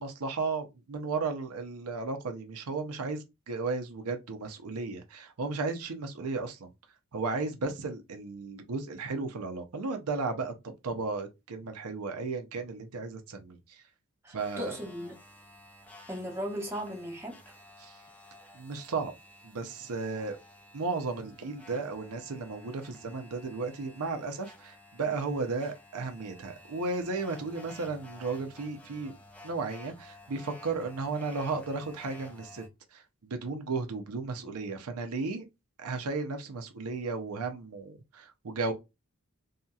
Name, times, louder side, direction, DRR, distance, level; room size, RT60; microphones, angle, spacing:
voice 1, 0.0-6.7 7.1-13.8 14.3-14.7 17.8-17.9 18.5-19.1 19.4-20.4 20.7-29.1 29.4-32.6 32.9-35.4 35.8-38.7, right 4 dB, 85° right, 0.6 m, -34 dB
voice 2, 14.2-15.2 16.1-17.4, equal, 10° right, 0.8 m, -37 dB
sound 1, 14.4-32.7, left 2 dB, 5° left, 0.5 m, -53 dB
2.8 x 2.7 x 2.3 m
head